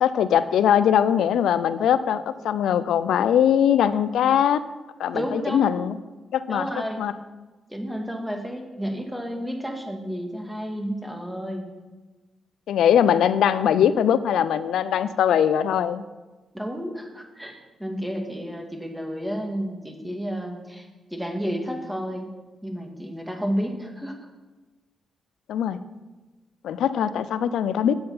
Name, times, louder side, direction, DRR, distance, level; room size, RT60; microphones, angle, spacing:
voice 1, 0.0-4.6 5.0-5.9 6.3-6.7 7.0-7.1 12.7-16.0 25.5-25.8 26.6-27.9, left 9 dB, 85° left, 15 dB, 0.4 m, -21 dB
voice 2, 5.1-5.8 6.5-7.0 7.7-11.7 16.5-22.3 22.6-24.2, equal, 5° right, 3 dB, 2.1 m, -31 dB
8.7 x 7.7 x 5.6 m, 1.2 s
cardioid pair, 65°, 0 cm